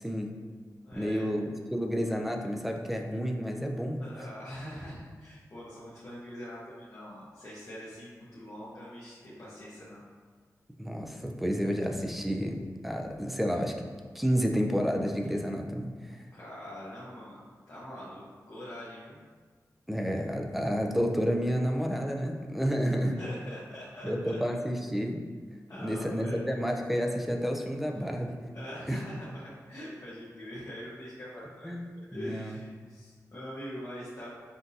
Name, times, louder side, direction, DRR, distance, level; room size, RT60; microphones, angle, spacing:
voice 1, 0.0-0.3 0.9-4.0 10.8-13.9 14.1-16.2 19.9-23.2 24.0-25.2 25.8-28.4 28.9-29.0 31.6-31.8 32.1-32.6, equal, 5° right, 2 dB, 0.4 m, -30 dB
voice 2, 0.8-1.4 4.0-10.0 16.3-17.4 17.7-19.2 23.2-24.1 25.7-26.4 28.5-31.7 32.1-34.4, equal, 45° left, -9 dB, 0.9 m, -43 dB
5.8 x 2.6 x 2.7 m, 1.5 s
wide cardioid pair, 110°, 7 cm